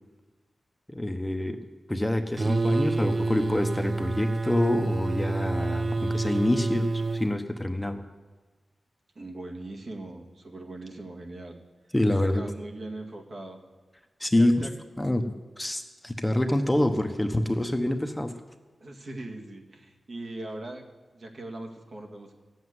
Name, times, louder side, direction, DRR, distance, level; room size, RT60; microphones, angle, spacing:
voice 1, 0.9-1.6 1.9-8.0 11.9-12.4 14.2-14.7 15.0-18.3, left 1 dB, 10° left, 6 dB, 0.9 m, -26 dB
sound 1, 2.4-7.3, right 3 dB, 35° right, 0.4 m, -28 dB
voice 2, 9.2-11.6 12.2-13.6 14.3-14.7 18.8-20.8 21.1-22.3, right 2 dB, 55° right, 1 dB, 2.0 m, -40 dB
14.5 x 7.9 x 9.5 m, 1.3 s
wide cardioid pair, 95°, 0 cm